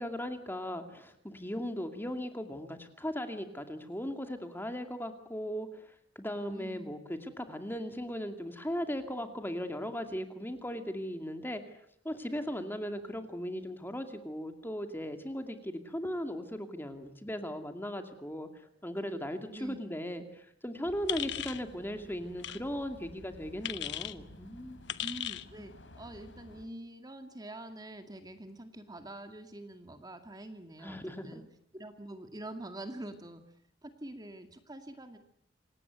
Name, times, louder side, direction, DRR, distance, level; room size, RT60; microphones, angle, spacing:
voice 1, 0.0-25.0 30.8-31.5, equal, 10° left, 7 dB, 2.3 m, -38 dB
voice 2, 6.5-6.9 19.5-19.8 25.0-31.4 31.7-33.4 33.8-35.2, right 1 dB, 20° right, 7 dB, 2.1 m, -45 dB
sound 1, 20.8-26.7, left 1 dB, 85° left, 3.6 m, -54 dB
Anillo Saltando, 21.1-21.6 22.4-22.6 23.6-24.1 24.9-25.5, left 12 dB, 65° left, 1.1 m, -36 dB
27.5 x 18.0 x 9.4 m, 0.72 s
head